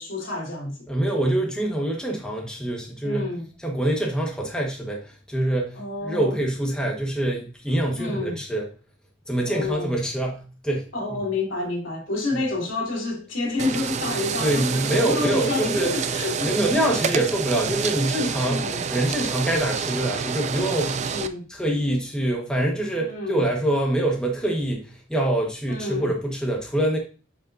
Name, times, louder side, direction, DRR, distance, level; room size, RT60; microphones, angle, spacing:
voice 1, 0.0-0.8 3.0-3.4 5.7-6.4 8.0-8.4 9.5-10.0 10.9-16.5 17.0-17.2 18.4-18.8 21.0-21.5 23.0-23.4 25.7-26.1, left 2 dB, 80° left, 2.8 m, -29 dB
voice 2, 0.9-3.3 3.6-8.7 9.3-10.9 14.4-15.9 16.4-21.0 21.5-27.0, right 1 dB, 5° left, 1.3 m, -25 dB
sound 1, 13.6-21.3, right 6 dB, 35° right, 0.4 m, -28 dB
9.5 x 5.3 x 2.6 m
head